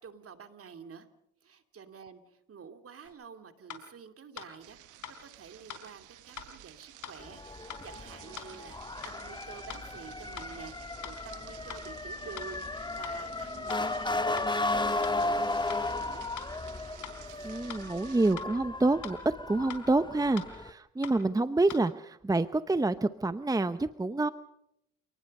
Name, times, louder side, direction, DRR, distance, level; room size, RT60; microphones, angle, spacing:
voice 1, 0.0-1.1 1.4-15.5 15.8-16.2, right 6 dB, 50° right, 8 dB, 2.7 m, -49 dB
sound 1, 3.0-3.2 3.7-3.8 4.4-4.5 5.0-5.2 5.7-5.8 6.4-6.5 7.0-7.2 7.7-7.8 8.4-8.5 9.0-9.2 9.7-9.8 10.4-10.5 11.0-11.2 11.7-11.8 12.4-12.5 13.0-13.2 13.7-13.8 14.4-14.5 15.0-15.2 15.7-15.8 16.4-16.5 17.0-17.2 17.7-17.8 18.4-18.5 19.0-19.2 19.7-19.8 20.4-20.5 21.0-21.2 21.7-21.8, left 9 dB, 75° left, 3.8 m, -42 dB
sound 2, 4.6-18.4, right 13 dB, 85° right, 1.4 m, -53 dB
Motor vehicle (road) / Siren, 7.2-20.7, left 2 dB, 15° left, 1.4 m, -35 dB
voice 2, 17.4-24.3, right 2 dB, 10° right, 12 dB, 0.8 m, -28 dB
29.5 x 19.5 x 5.5 m, 0.79 s
cardioid pair, 90°, 30 cm